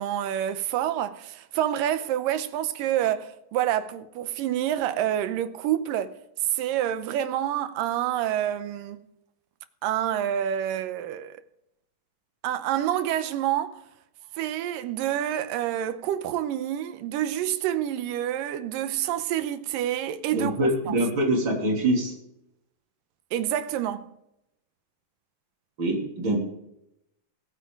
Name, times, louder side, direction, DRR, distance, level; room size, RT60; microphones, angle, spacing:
voice 1, 0.0-6.1 6.5-9.0 9.8-11.4 12.4-13.8 14.4-20.9 23.3-24.1, right 11 dB, 90° right, 2.5 m, -28 dB
voice 2, 20.3-22.1 25.8-26.4, right 1 dB, 35° right, 3.6 m, -24 dB
22.0 x 9.2 x 3.8 m
omnidirectional pair, 3.9 m